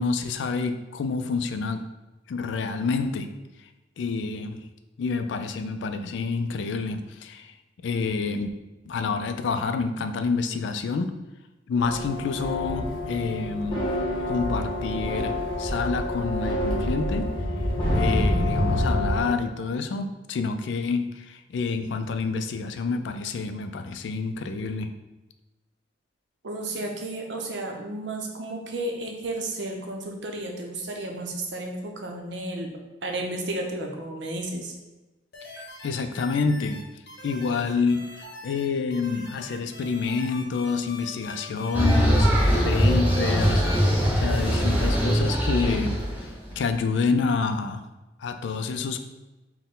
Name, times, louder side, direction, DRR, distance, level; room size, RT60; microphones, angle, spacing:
voice 1, 0.0-1.8 2.3-3.3 3.6-3.7 4.0-4.6 5.0-7.5 7.8-8.5 8.9-11.1 11.7-13.8 14.3-17.3 17.9-24.9 35.4-36.8 37.2-42.3 42.6-46.1 46.5-47.9 48.2-49.0, left 4 dB, 75° left, 8 dB, 0.3 m, -28 dB
sound 1, 11.8-19.2, left 1 dB, 30° left, 0.9 m, -27 dB
voice 2, 26.4-32.7 33.0-34.7, right 2 dB, 70° right, 2 dB, 0.6 m, -32 dB
sound 2, 35.3-36.8 37.1-38.7 38.9-44.0, left 2 dB, 55° left, 0.8 m, -42 dB
sound 3, 41.7-46.7, equal, 10° right, 0.7 m, -22 dB
4.2 x 2.2 x 3.7 m, 1.1 s
head